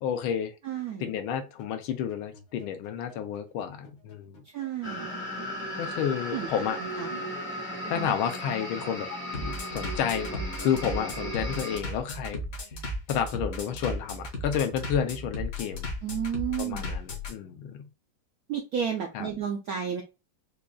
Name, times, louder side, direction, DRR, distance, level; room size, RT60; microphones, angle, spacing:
voice 1, 0.0-0.5 1.0-4.4 5.8-6.8 7.1-7.3 7.9-9.1 9.3-12.4 13.1-15.9 16.6-17.9 19.1-19.3, left 8 dB, 80° left, 1.5 m, -31 dB
voice 2, 0.6-1.1 4.5-5.1 6.3-6.5 6.8-7.1 7.9-8.1 16.0-16.9 18.5-20.0, right 8 dB, 75° right, 0.8 m, -32 dB
Bass drum, 1.4-17.3, left 1 dB, 55° left, 1.1 m, -36 dB
sound 1, 4.8-11.8, equal, 15° left, 0.5 m, -36 dB
5.1 x 2.3 x 2.2 m
omnidirectional pair, 2.3 m